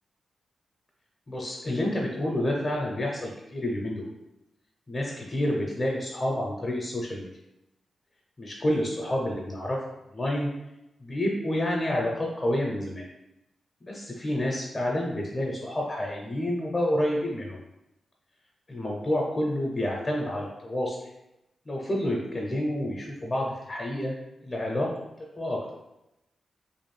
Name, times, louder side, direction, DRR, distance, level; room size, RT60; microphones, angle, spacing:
voice 1, 1.3-4.1 4.9-7.3 8.4-9.8 10.1-10.5 11.0-13.0 13.8-17.6 18.7-21.0 21.7-24.1 24.4-24.9 25.4-25.6, left 1 dB, 35° left, -2 dB, 0.6 m, -29 dB
2.5 x 2.2 x 3.2 m, 0.91 s
cardioid pair, 70°, 0 cm